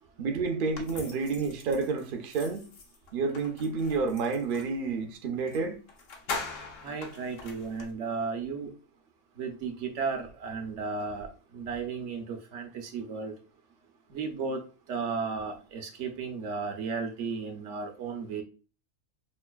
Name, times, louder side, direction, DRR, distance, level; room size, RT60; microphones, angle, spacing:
voice 1, 0.2-2.7 3.1-5.8, right 4 dB, 55° right, 0.6 m, -30 dB
sound 1, 0.7-4.8 5.5-5.6 5.9-7.9, left 4 dB, 75° left, 1.1 m, -42 dB
voice 2, 6.8-8.7 9.4-11.3 11.5-13.3 14.1-14.6 14.9-18.4, right 5 dB, 70° right, 1.0 m, -34 dB
5.4 x 2.5 x 2.2 m
omnidirectional pair, 1.3 m